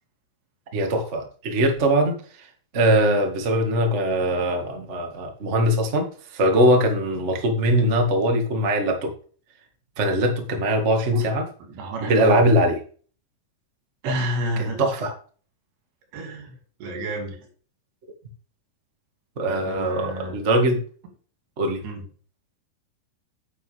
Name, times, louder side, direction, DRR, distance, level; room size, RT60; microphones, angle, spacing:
voice 1, 0.7-2.1 2.7-9.1 10.0-11.4 12.0-12.7 14.6-15.1 19.4-20.8 21.6-21.8, right 1 dB, 55° right, 3 dB, 0.7 m, -21 dB
voice 2, 11.7-12.4 14.0-14.9 16.1-17.4 19.5-20.4 21.8-22.1, right 1 dB, 75° right, 3 dB, 4.4 m, -30 dB
9.6 x 8.4 x 3.4 m, 0.41 s
omnidirectional pair, 4.8 m